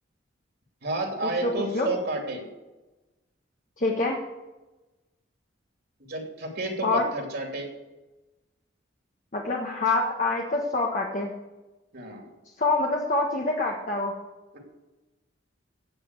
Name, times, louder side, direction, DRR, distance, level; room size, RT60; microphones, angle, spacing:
voice 1, 0.8-2.4 6.1-7.7 11.9-12.3 14.5-14.6, right 2 dB, 60° right, 2 dB, 2.8 m, -31 dB
voice 2, 1.4-1.9 3.8-4.2 6.8-7.1 9.3-11.3 12.6-14.1, left 2 dB, 45° left, -1 dB, 1.4 m, -26 dB
16.5 x 6.1 x 8.3 m, 1.1 s
head